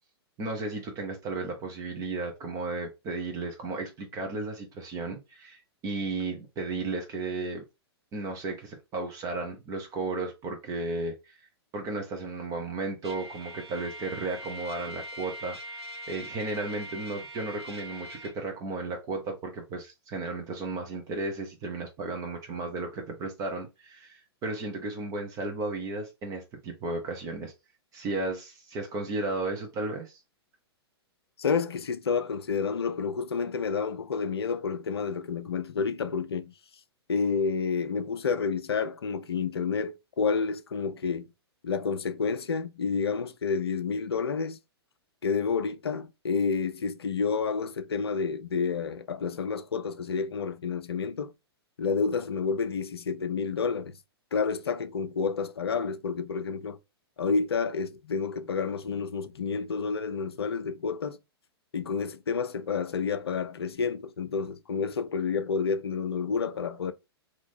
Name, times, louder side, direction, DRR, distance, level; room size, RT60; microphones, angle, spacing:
voice 1, 0.4-7.6 8.1-11.4 11.7-15.6 16.1-27.5 27.9-30.2, right 3 dB, 25° right, 0.9 m, -34 dB
Trumpet, 13.0-18.4, equal, 80° right, 1.3 m, -42 dB
voice 2, 31.4-36.5 37.1-41.3 41.6-44.6 45.2-51.3 51.8-54.0 54.3-56.8 57.2-61.2 61.7-66.9, left 5 dB, 70° left, 0.5 m, -29 dB
3.0 x 2.7 x 4.1 m
figure-of-eight pair, 110°, 14 cm